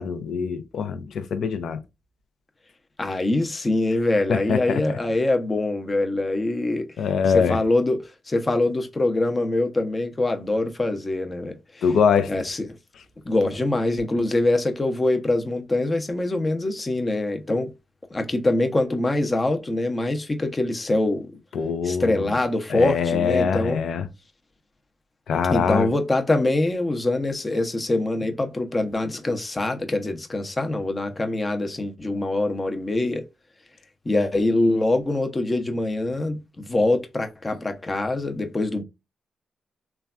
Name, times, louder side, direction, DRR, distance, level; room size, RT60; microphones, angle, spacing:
voice 1, 0.0-1.8 4.3-5.0 7.0-7.6 11.8-12.3 21.5-22.3 22.7-24.1 25.3-25.9, left 6 dB, 75° left, 0.4 m, -23 dB
voice 2, 3.0-6.8 7.3-11.8 12.3-12.7 13.3-17.7 18.1-21.3 21.8-23.8 25.5-33.2 34.1-38.8, left 2 dB, 30° left, 0.6 m, -24 dB
3.2 x 2.2 x 2.4 m
supercardioid pair, 55°, 0 cm